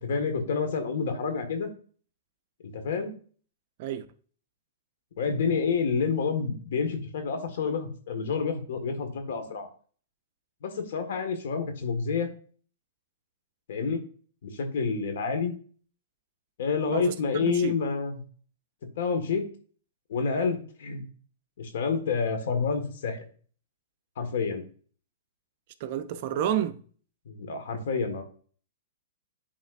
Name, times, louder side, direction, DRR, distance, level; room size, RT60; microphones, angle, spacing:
voice 1, 0.0-1.7 2.7-3.1 5.2-9.7 10.6-12.3 13.7-14.0 14.4-15.5 16.6-18.2 19.0-19.4 20.1-21.0 21.6-23.2 24.2-24.6 27.3-28.2, left 5 dB, 65° left, 1.6 m, -28 dB
voice 2, 16.9-17.7 25.8-26.8, right 10 dB, 45° right, 0.6 m, -30 dB
10.0 x 4.2 x 2.5 m
hypercardioid pair, 155°, 0 cm